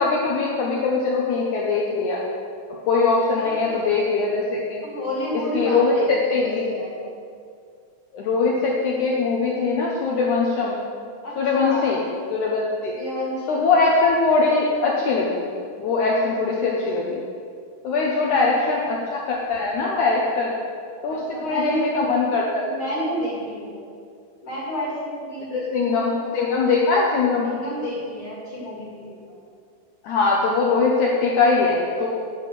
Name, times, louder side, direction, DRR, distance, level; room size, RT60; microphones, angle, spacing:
voice 1, 0.0-2.2 2.9-4.8 5.5-6.7 8.1-10.8 11.4-12.0 12.3-13.0 13.5-15.5 15.8-17.2 17.8-20.5 21.0-22.7 25.5-27.5 30.0-32.1, left 4 dB, 70° left, -3 dB, 1.9 m, -21 dB
voice 2, 3.3-3.9 4.8-7.0 11.2-12.0 12.9-13.6 16.7-17.0 18.5-18.7 21.1-21.9 22.6-23.8 24.4-26.2 27.4-29.4, equal, 40° left, -5 dB, 2.2 m, -30 dB
10.0 x 5.9 x 6.6 m, 2.3 s
omnidirectional pair, 4.5 m